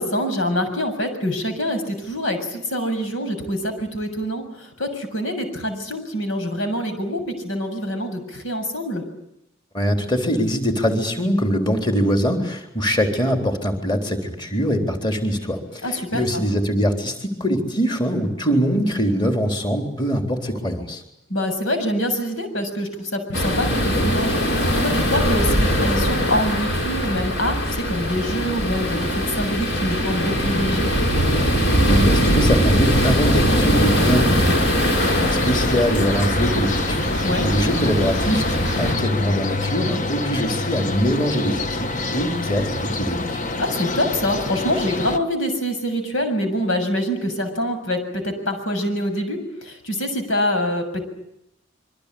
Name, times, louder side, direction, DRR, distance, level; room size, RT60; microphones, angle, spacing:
voice 1, 0.0-9.0 15.8-16.4 21.3-24.4 24.8-30.9 37.2-37.5 43.6-51.0, equal, 85° left, 7 dB, 7.0 m, -25 dB
voice 2, 9.7-21.0 31.8-43.4, equal, 25° left, 4 dB, 3.8 m, -23 dB
sound 1, 23.3-38.9, equal, 60° left, 7.3 m, -21 dB
sound 2, 35.0-45.2, left 3 dB, 40° left, 1.3 m, -26 dB
26.5 x 24.0 x 8.6 m, 0.82 s
head